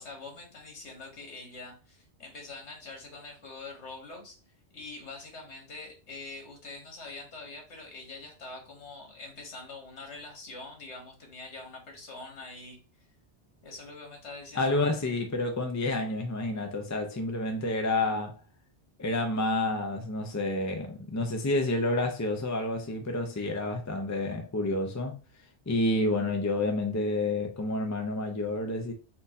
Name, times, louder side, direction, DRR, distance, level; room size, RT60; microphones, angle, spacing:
voice 1, 0.0-4.4 4.7-12.8 13.6-14.8, left 3 dB, 80° left, 1.7 m, -44 dB
voice 2, 14.6-18.3 19.0-25.2 25.7-28.9, left 2 dB, 25° left, 0.3 m, -29 dB
4.4 x 2.7 x 4.0 m
omnidirectional pair, 1.1 m